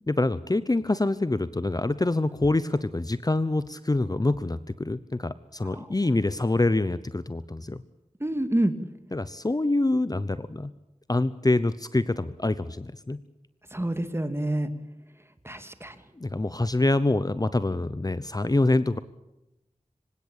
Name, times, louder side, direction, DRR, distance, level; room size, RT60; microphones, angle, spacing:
voice 1, 0.1-7.8 9.1-10.7 11.1-13.2 16.2-19.0, left 2 dB, 30° left, 15 dB, 0.8 m, -25 dB
voice 2, 8.2-8.7 13.7-14.7 15.4-16.0, right 1 dB, 20° right, 10 dB, 2.3 m, -27 dB
26.0 x 17.0 x 8.8 m, 0.92 s
wide cardioid pair, 65°, 13 cm